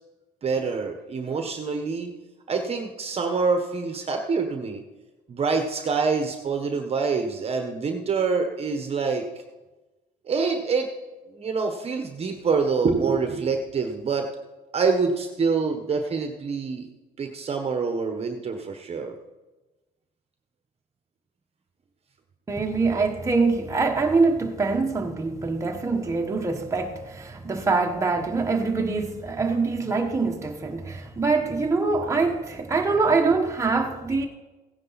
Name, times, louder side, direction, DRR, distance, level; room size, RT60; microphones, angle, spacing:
voice 1, 0.4-2.1 2.5-4.8 5.3-9.3 10.3-10.9 11.3-14.3 14.7-16.9 17.2-19.1, right 4 dB, 35° right, 5 dB, 1.2 m, -26 dB
voice 2, 22.5-34.3, right 4 dB, 15° right, 2 dB, 1.3 m, -24 dB
16.0 x 10.0 x 4.1 m, 1.1 s
cardioid pair, 110°, 17 cm